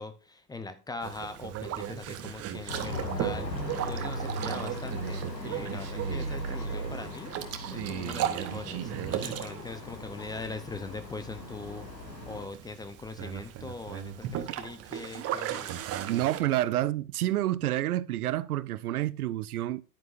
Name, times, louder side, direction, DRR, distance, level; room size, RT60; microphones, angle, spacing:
voice 1, 0.0-3.5 3.9-7.3 7.7-11.9 12.3-15.8, left 3 dB, 10° left, 0.6 m, -41 dB
Boat Water vehicle, 1.0-16.4, right 10 dB, 30° right, 1.1 m, -36 dB
sound 1, 2.7-12.5, left 1 dB, 85° left, 1.8 m, -38 dB
voice 2, 16.1-19.8, right 14 dB, 65° right, 0.6 m, -28 dB
10.5 x 9.2 x 2.5 m
figure-of-eight pair, 90°, 49 cm